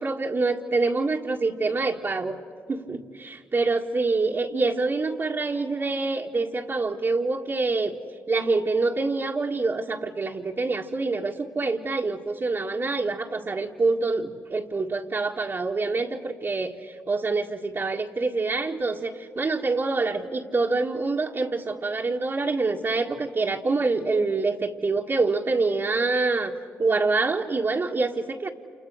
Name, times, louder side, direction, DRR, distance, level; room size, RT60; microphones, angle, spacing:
voice 1, 0.0-2.4 2.7-7.9 8.3-26.5 26.8-28.5, right 3 dB, 45° right, -2 dB, 1.9 m, -26 dB
29.5 x 28.5 x 6.4 m, 2.2 s
supercardioid pair, 55°, 6 cm